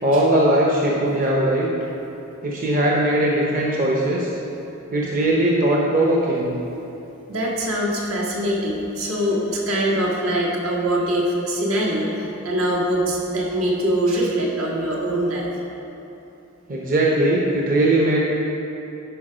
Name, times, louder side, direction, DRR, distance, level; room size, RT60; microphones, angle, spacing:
voice 1, 0.0-1.7 2.4-4.3 4.9-6.5 16.7-18.2, right 1 dB, 40° right, -3 dB, 0.8 m, -19 dB
voice 2, 7.3-15.5, right 1 dB, 75° right, -3 dB, 1.6 m, -23 dB
10.5 x 4.8 x 5.0 m, 2.9 s
head